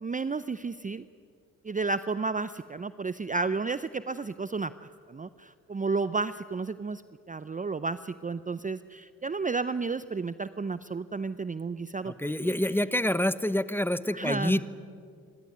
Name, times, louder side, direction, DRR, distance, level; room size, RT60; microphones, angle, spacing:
voice 1, 0.0-1.1 1.6-7.0 7.3-12.5 14.1-14.6, right 4 dB, 20° right, 14 dB, 0.6 m, -32 dB
voice 2, 12.0-14.6, left 1 dB, 5° left, 14 dB, 1.1 m, -27 dB
29.5 x 12.5 x 9.5 m, 2.2 s
supercardioid pair, 50°, 36 cm